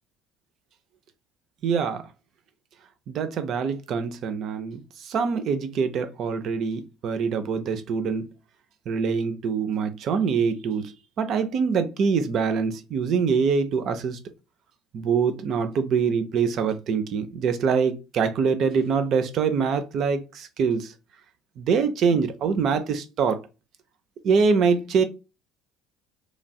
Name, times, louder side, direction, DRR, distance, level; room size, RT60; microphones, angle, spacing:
voice 1, 1.6-2.0 3.1-8.3 8.9-10.9 11.2-14.2 14.9-20.9 21.6-23.4 24.2-25.0, right 5 dB, 50° right, 0.5 m, -24 dB
3.1 x 2.5 x 2.2 m
hypercardioid pair, 60°, 0 cm